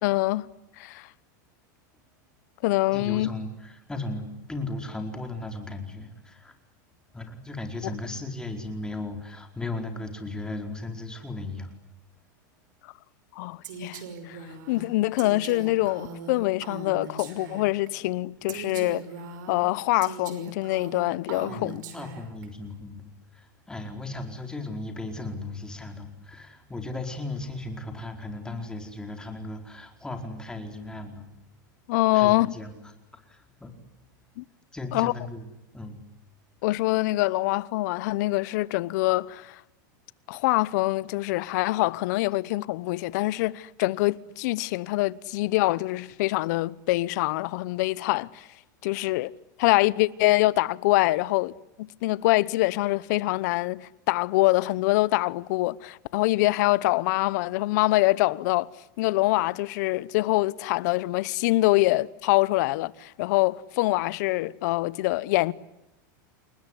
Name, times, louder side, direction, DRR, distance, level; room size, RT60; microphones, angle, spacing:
voice 1, 0.0-0.5 0.8-1.1 2.6-3.3 13.4-14.4 14.7-19.0 19.5-21.8 31.9-32.6 34.4-34.5 34.9-35.1 36.6-39.6 40.3-48.5 48.8-49.3 49.6-58.7 59.0-65.5, left 19 dB, 60° left, 1.0 m, -25 dB
voice 2, 2.9-6.5 7.1-11.7 18.5-18.6 21.5-31.3 32.1-32.8 33.1-33.7 34.7-35.5 35.7-36.0, left 2 dB, 5° left, 4.7 m, -36 dB
Female speech woman speaking, 13.6-17.9 18.5-22.5, right 4 dB, 70° right, 5.7 m, -40 dB
29.5 x 20.5 x 9.9 m
supercardioid pair, 135°, 10 cm